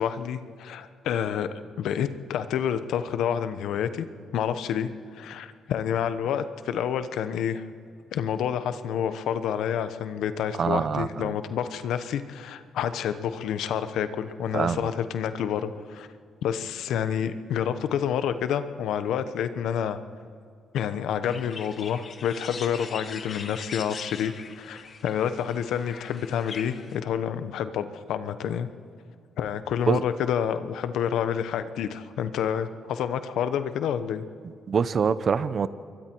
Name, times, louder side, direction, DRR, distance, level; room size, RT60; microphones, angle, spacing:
voice 1, 0.0-1.5 1.8-4.0 4.3-4.9 5.2-7.6 8.1-16.1 16.4-20.0 20.7-28.7 29.4-34.2, left 8 dB, 80° left, 11 dB, 1.1 m, -28 dB
voice 2, 10.5-11.3 14.5-14.9 29.9-30.0 34.7-35.7, right 6 dB, 50° right, 15 dB, 0.8 m, -25 dB
sound 1, 21.2-27.0, left 5 dB, 50° left, 1.6 m, -41 dB
27.0 x 22.5 x 4.7 m, 2.3 s
cardioid pair, 90°, 0 cm